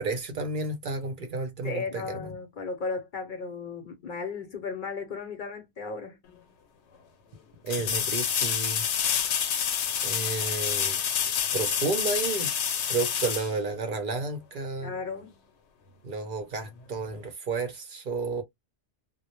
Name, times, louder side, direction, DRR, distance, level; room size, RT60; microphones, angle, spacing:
voice 1, 0.0-2.3 7.6-8.8 10.0-11.0 11.5-12.5 12.9-14.9 16.0-18.4, right 3 dB, 55° right, 0.7 m, -31 dB
voice 2, 1.6-6.2 14.8-15.4, left 4 dB, 55° left, 0.7 m, -35 dB
sound 1, 6.3-6.4 7.7-14.3 17.1-17.2, left 8 dB, 85° left, 0.8 m, -28 dB
2.1 x 2.1 x 2.9 m
omnidirectional pair, 1.1 m